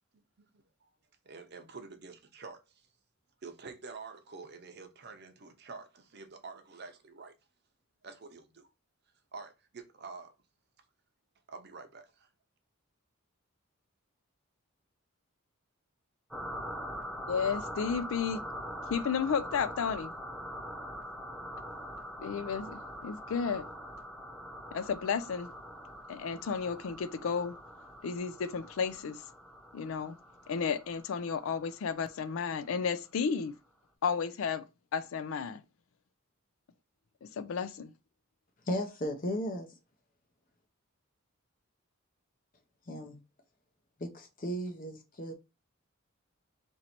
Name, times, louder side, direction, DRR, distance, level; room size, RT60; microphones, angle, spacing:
voice 1, 1.2-2.9 3.4-7.3 8.0-8.7 9.3-10.3 11.5-12.3, right 4 dB, 50° right, 0.7 m, -48 dB
sound 1, 16.3-32.6, equal, ahead, 0.4 m, -43 dB
voice 2, 17.3-18.4 18.9-20.1 22.2-23.6 24.7-25.5 26.1-27.5 28.0-29.2 29.7-30.1 30.5-33.5 34.0-34.6 34.9-35.6 37.4-37.9, left 6 dB, 70° left, 0.4 m, -32 dB
voice 3, 38.7-39.7 42.9-43.2 44.0-45.3, equal, 40° left, 0.7 m, -35 dB
3.0 x 2.7 x 4.2 m
head